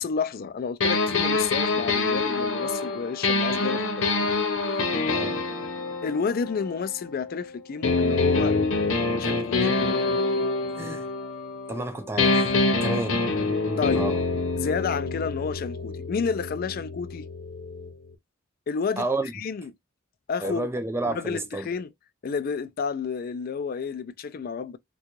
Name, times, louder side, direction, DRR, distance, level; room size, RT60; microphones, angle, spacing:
voice 1, 0.0-4.3 6.0-8.6 9.2-9.7 13.8-14.0 14.6-17.3 18.7-19.0 19.3-19.7 20.3-20.7 21.1-21.9 22.2-24.8, left 5 dB, 50° left, 0.3 m, -30 dB
sound 1, 0.8-7.3 7.8-11.9 12.2-17.9, left 3 dB, 85° left, 0.8 m, -26 dB
voice 2, 5.0-5.4 10.8-11.1 11.7-12.5 12.8-13.3 13.9-14.2 19.0-19.3 20.4-21.7, right 2 dB, 15° right, 0.4 m, -30 dB
3.6 x 2.3 x 2.9 m
head